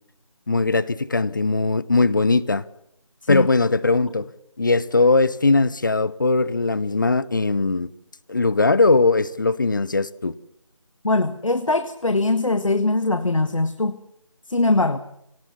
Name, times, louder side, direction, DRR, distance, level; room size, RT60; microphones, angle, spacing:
voice 1, 0.5-2.6 3.3-4.3 4.6-7.9 8.3-10.3, left 3 dB, 35° left, 20 dB, 0.8 m, -20 dB
voice 2, 11.0-14.0 14.5-15.0, left 2 dB, 65° left, 10 dB, 1.6 m, -21 dB
25.5 x 18.0 x 7.2 m, 0.77 s
figure-of-eight pair, 165°, 18 cm